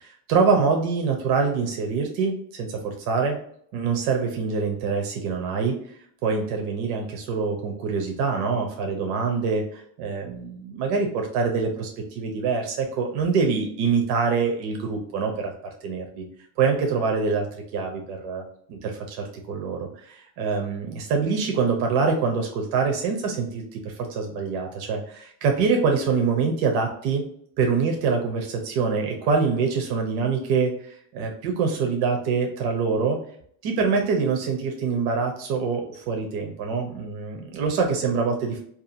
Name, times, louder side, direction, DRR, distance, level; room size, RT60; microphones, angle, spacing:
voice 1, 0.0-3.4 3.7-5.7 6.2-15.5 15.8-16.2 16.6-17.5 17.7-18.4 18.7-27.2 27.6-33.2 33.6-38.6, right 5 dB, 85° right, 3 dB, 0.7 m, -25 dB
2.7 x 2.3 x 2.6 m, 0.64 s
cardioid pair, 175°, 45 cm